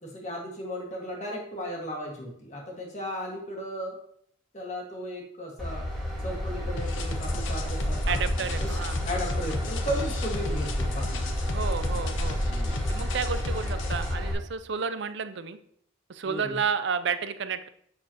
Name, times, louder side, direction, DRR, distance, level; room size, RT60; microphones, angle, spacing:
voice 1, 0.0-4.0 4.5-5.8 6.2-8.7 9.0-11.1 12.5-12.7 16.2-16.6, equal, 35° left, 0 dB, 1.6 m, -35 dB
Train / Engine, 5.6-14.3, equal, ahead, 1.7 m, -30 dB
sound 1, 6.8-14.1, left 4 dB, 70° left, 0.7 m, -38 dB
voice 2, 8.1-9.0 11.5-12.4 12.9-15.6 16.1-17.7, right 6 dB, 60° right, 11 dB, 0.5 m, -31 dB
7.6 x 6.2 x 2.9 m, 0.66 s
head